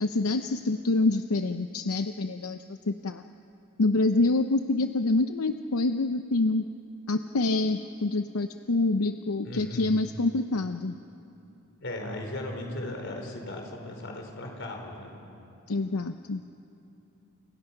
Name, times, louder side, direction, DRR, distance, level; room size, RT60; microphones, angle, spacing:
voice 1, 0.0-3.2 3.8-6.7 7.1-10.9 15.7-16.4, left 2 dB, 85° left, 8 dB, 0.7 m, -26 dB
voice 2, 9.4-9.9 11.8-15.1, left 1 dB, 55° left, 2 dB, 4.5 m, -37 dB
29.5 x 29.0 x 5.9 m, 3.0 s
head